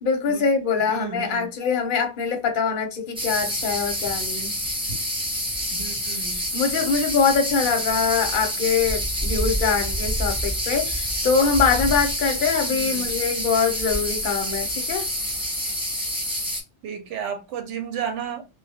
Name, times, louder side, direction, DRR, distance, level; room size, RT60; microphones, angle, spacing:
voice 1, 0.0-4.5 6.3-15.1, left 5 dB, 55° left, 0.7 m, -23 dB
voice 2, 0.9-1.5 5.7-6.4 12.7-13.1 16.8-18.4, right 8 dB, 90° right, 0.9 m, -33 dB
sound 1, 3.2-16.6, equal, 5° right, 0.4 m, -27 dB
2.2 x 2.0 x 2.7 m
omnidirectional pair, 1.2 m